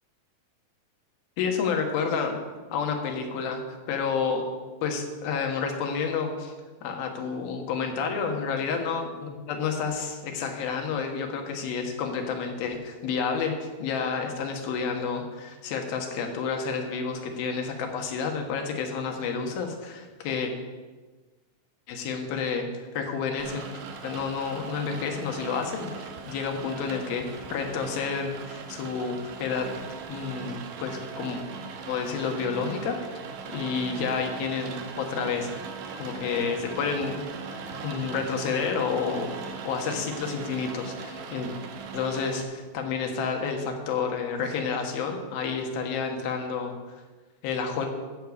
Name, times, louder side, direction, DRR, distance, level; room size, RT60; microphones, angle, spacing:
voice 1, 1.4-2.4 2.7-3.6 3.9-4.4 4.8-6.5 6.8-20.5 21.9-23.7 24.0-29.7 30.1-31.4 31.9-33.2 33.5-35.5 36.0-37.2 37.5-39.3 39.6-41.5 41.9-46.7 47.4-47.9, left 5 dB, 85° left, 3 dB, 3.2 m, -30 dB
Rain, 23.4-42.4, right 5 dB, 65° right, 2.1 m, -39 dB
13.5 x 5.1 x 8.2 m, 1.3 s
omnidirectional pair, 4.2 m